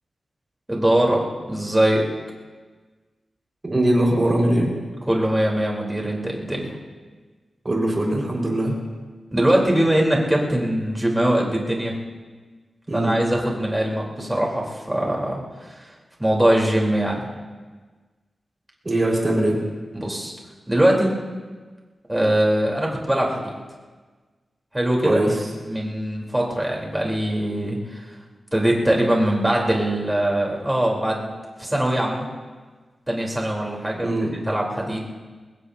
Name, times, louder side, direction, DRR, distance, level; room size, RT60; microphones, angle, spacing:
voice 1, 0.7-1.2 1.5-2.1 5.1-6.8 9.3-11.9 12.9-15.4 15.7-15.9 16.2-17.3 19.9-20.3 20.7-21.1 22.1-23.5 24.7-25.2 25.6-28.0 28.5-31.3 31.6-32.3 33.1-34.1 34.5-35.1, right 1 dB, 10° right, -2 dB, 3.7 m, -22 dB
voice 2, 3.6-4.7 7.6-8.7 12.9-13.2 18.8-19.6 25.0-25.4 33.9-34.3, right 1 dB, 30° right, -2 dB, 4.9 m, -21 dB
24.0 x 20.0 x 2.8 m, 1.4 s
wide cardioid pair, 110°, 0 cm